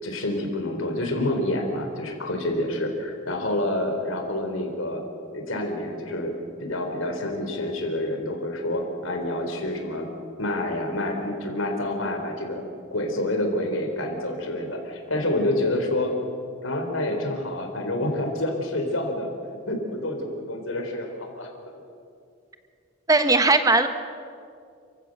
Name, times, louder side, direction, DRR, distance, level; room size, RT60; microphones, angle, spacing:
voice 1, 0.0-5.0 5.3-6.3 6.6-10.1 10.4-16.1 16.6-19.3 19.7-21.5, left 1 dB, 85° left, 3 dB, 4.2 m, -28 dB
voice 2, 23.1-23.9, right 3 dB, 15° right, 8 dB, 1.2 m, -18 dB
29.5 x 15.5 x 6.7 m, 2.4 s
head